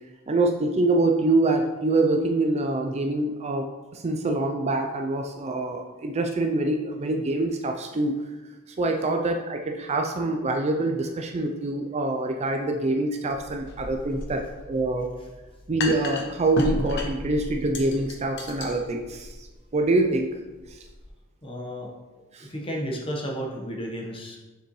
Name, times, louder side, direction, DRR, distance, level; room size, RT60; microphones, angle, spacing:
voice 1, 0.3-3.7 3.9-8.2 8.8-15.1 15.7-19.5 19.7-20.3 22.3-22.5, right 2 dB, 30° right, 3 dB, 0.4 m, -25 dB
sound 1, 13.3-21.1, left 1 dB, 50° left, 0.9 m, -35 dB
voice 2, 21.4-21.9 22.4-24.4, equal, 25° left, -1 dB, 1.1 m, -32 dB
6.8 x 6.5 x 3.1 m, 1.2 s
head